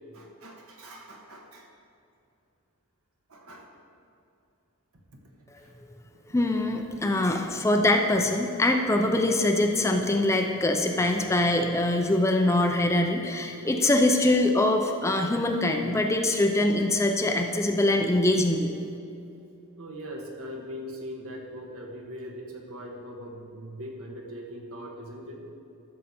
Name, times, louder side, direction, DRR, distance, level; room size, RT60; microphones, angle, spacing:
voice 1, 0.1-1.7 3.3-3.7 5.1-5.2 5.6-5.7 6.9-7.0 19.8-25.4, equal, 70° right, 1 dB, 1.5 m, -41 dB
voice 2, 6.3-18.7, left 1 dB, 15° left, 4 dB, 0.5 m, -23 dB
12.5 x 6.6 x 4.3 m, 2.6 s
head